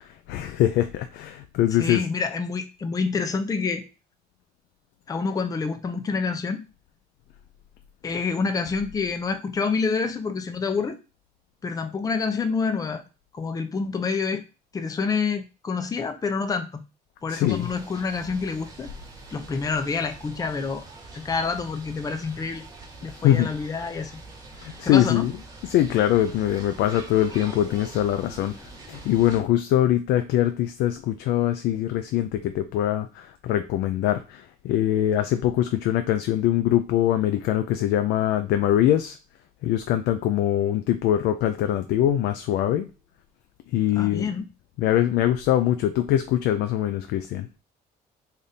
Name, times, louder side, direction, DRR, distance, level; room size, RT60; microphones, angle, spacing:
voice 1, 0.3-2.0 17.3-17.7 23.2-23.5 24.6-25.3 25.7-28.5 28.9-39.2 39.6-42.9 43.7-44.3 44.8-47.5, left 12 dB, 80° left, 8 dB, 0.4 m, -23 dB
voice 2, 1.7-3.8 5.1-6.7 8.0-11.0 11.6-13.0 13.3-14.4 14.7-16.8 17.2-18.9 19.3-20.8 21.1-22.6 23.0-24.1 24.8-25.3 44.0-44.4, left 4 dB, 20° left, 7 dB, 0.5 m, -27 dB
sound 1, 17.5-29.4, right 3 dB, 20° right, 1.3 m, -44 dB
3.5 x 2.5 x 4.0 m, 0.30 s
cardioid pair, 110°, 17 cm